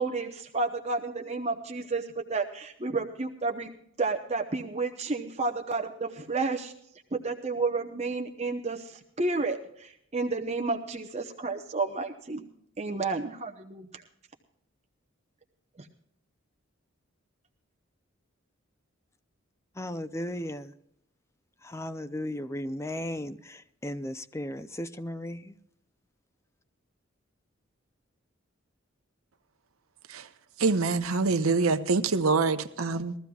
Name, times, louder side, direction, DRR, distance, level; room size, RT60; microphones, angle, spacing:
voice 1, 0.0-3.7 4.0-6.7 7.1-12.4 12.8-14.0 15.8-15.9, right 3 dB, 30° right, 0.8 m, -31 dB
voice 2, 19.7-20.7 21.6-25.6, left 1 dB, 15° left, 0.5 m, -36 dB
voice 3, 30.6-33.2, right 4 dB, 85° right, 0.8 m, -25 dB
21.0 x 14.5 x 2.3 m
head